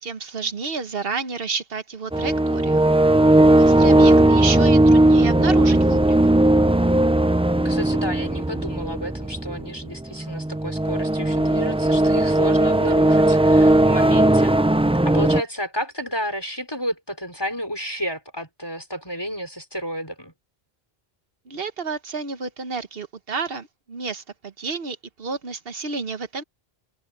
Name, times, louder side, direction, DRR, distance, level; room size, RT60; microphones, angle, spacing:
voice 1, 0.0-2.8 3.6-6.3 21.5-26.4, right 4 dB, 70° right, 1.4 m, -30 dB
sound 1, 2.1-15.4, right 1 dB, 10° right, 0.3 m, -17 dB
voice 2, 7.6-14.8 15.0-20.3, equal, 25° left, 4.1 m, -31 dB
omnidirectional pair, 1.0 m